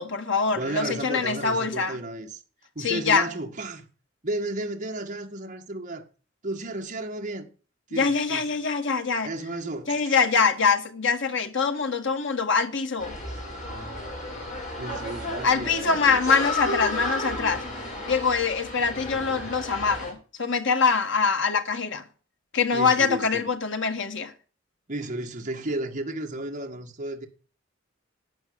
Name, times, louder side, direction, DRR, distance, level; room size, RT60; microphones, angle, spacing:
voice 1, 0.0-2.0 2.8-3.3 7.9-9.3 9.9-13.2 15.4-17.6 18.1-22.0 22.5-24.3, left 5 dB, 65° left, 1.8 m, -24 dB
voice 2, 0.5-2.4 2.8-3.9 4.2-6.0 6.4-7.5 7.9-8.5 9.2-10.1 14.8-16.2 22.7-23.5 24.9-27.3, right 2 dB, 40° right, 1.9 m, -33 dB
sound 1, 13.0-20.1, left 1 dB, 40° left, 7.6 m, -33 dB
11.5 x 9.3 x 8.7 m
head